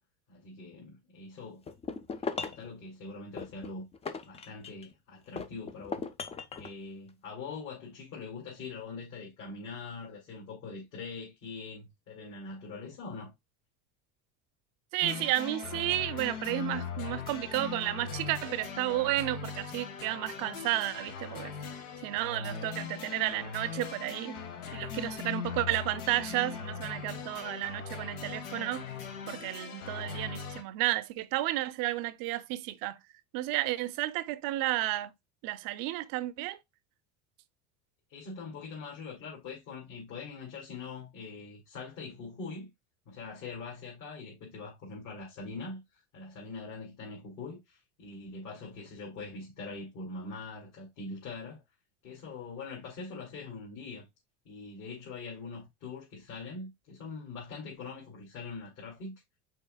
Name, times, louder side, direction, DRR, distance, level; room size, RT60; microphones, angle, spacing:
voice 1, 0.3-1.6 2.4-3.8 4.3-6.1 6.6-13.3 38.1-42.7 43.1-51.6 52.0-54.1 54.4-59.1, left 4 dB, 55° left, 2.4 m, -43 dB
sound 1, 1.7-2.7 3.4-4.9 5.4-6.7, left 5 dB, 15° left, 0.4 m, -38 dB
voice 2, 14.9-21.7 22.0-24.4 24.7-28.8 29.3-33.0 33.3-35.1 35.4-36.6, right 16 dB, 60° right, 0.6 m, -32 dB
sound 2, 15.0-30.6, left 6 dB, 85° left, 1.4 m, -40 dB
5.5 x 4.0 x 2.2 m
supercardioid pair, 120°, 39 cm